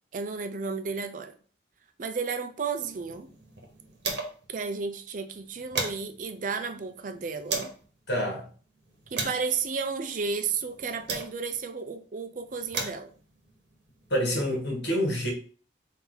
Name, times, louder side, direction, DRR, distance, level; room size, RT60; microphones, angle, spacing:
voice 1, 0.1-1.4 2.0-3.3 4.5-7.7 9.1-13.1, right 5 dB, 45° right, 0.4 m, -33 dB
sound 1, 2.7-4.6 4.9-5.0 5.3-7.8 8.5-11.7 12.4-14.6, right 4 dB, 75° right, 1.1 m, -37 dB
voice 2, 8.1-8.5 14.1-15.3, equal, 70° left, 1.5 m, -27 dB
4.3 x 2.7 x 3.9 m
head